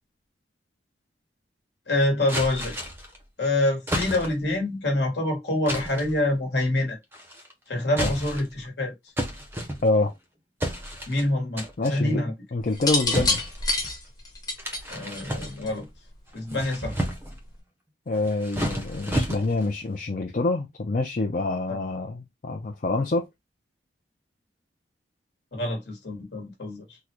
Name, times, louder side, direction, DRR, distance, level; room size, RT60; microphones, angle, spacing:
voice 1, 1.9-2.7 3.4-7.0 7.7-8.9 11.1-12.3 14.9-15.9 16.3-16.9 21.7-21.8 25.5-27.0, left 1 dB, 70° left, 1.2 m, -26 dB
sound 1, 2.3-3.2 3.9-4.5 5.7-6.2 7.1-7.5 7.9-8.6 9.2-10.1 10.6-11.2 11.6-12.0 13.1-14.0 14.6-15.8 16.3-17.4 18.1-19.7, equal, 10° right, 0.6 m, -31 dB
voice 2, 11.8-12.2 12.5-13.4 18.1-23.3, left 2 dB, 45° left, 0.4 m, -26 dB
sound 2, 12.7-15.9 17.0-17.3, left 3 dB, 20° left, 0.8 m, -27 dB
3.6 x 2.1 x 2.9 m
head